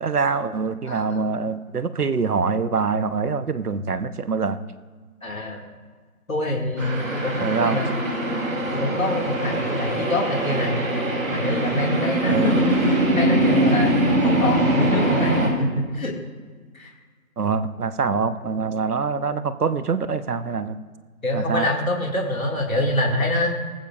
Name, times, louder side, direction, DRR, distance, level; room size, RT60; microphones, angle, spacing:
voice 1, 0.0-4.6 7.4-7.8 12.3-12.7 17.4-20.8 21.3-21.7, right 5 dB, 90° right, 12 dB, 1.0 m, -24 dB
voice 2, 0.8-1.2 5.2-5.6 6.3-7.8 8.7-10.8 11.3-15.3 15.6-15.7 15.9-16.1 16.7-16.9 21.2-23.5, left 1 dB, 65° left, 0 dB, 2.1 m, -25 dB
sound 1, 6.8-15.5, right 1 dB, 65° right, 3.2 m, -22 dB
19.0 x 15.0 x 2.4 m, 1.5 s
figure-of-eight pair, 175°, 44 cm